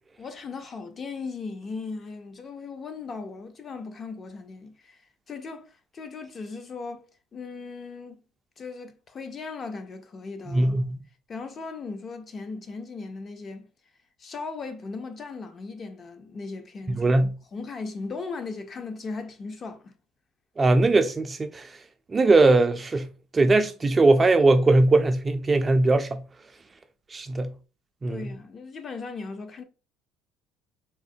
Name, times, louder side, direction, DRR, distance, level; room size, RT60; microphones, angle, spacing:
voice 1, 0.2-5.0 5.3-7.1 7.3-8.2 8.6-10.7 11.3-13.7 14.2-17.1 17.5-19.9 28.1-29.6, left 4 dB, 35° left, 0.5 m, -37 dB
voice 2, 10.5-11.0 16.9-17.3 20.6-21.7 22.1-23.1 23.3-26.2 27.1-27.5 28.0-28.3, right 2 dB, 25° right, 0.3 m, -20 dB
3.5 x 2.1 x 2.6 m
supercardioid pair, 100°, 0 cm